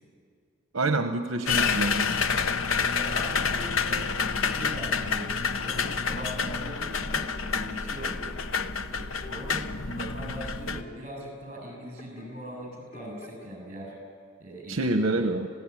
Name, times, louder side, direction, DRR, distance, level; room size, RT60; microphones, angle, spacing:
voice 1, 0.7-2.1 14.7-15.5, right 2 dB, 70° right, 7 dB, 1.0 m, -27 dB
sound 1, 1.5-10.8, left 5 dB, 75° left, 0.9 m, -28 dB
voice 2, 2.8-4.1 4.4-8.3 8.9-13.9 14.4-15.3, right 1 dB, 35° right, 2 dB, 7.9 m, -41 dB
sound 2, 4.5-5.9 6.4-7.6 8.3-8.6 8.9-12.4 12.6-13.5, left 2 dB, 40° left, 4.2 m, -50 dB
27.0 x 17.0 x 9.9 m, 2.2 s
head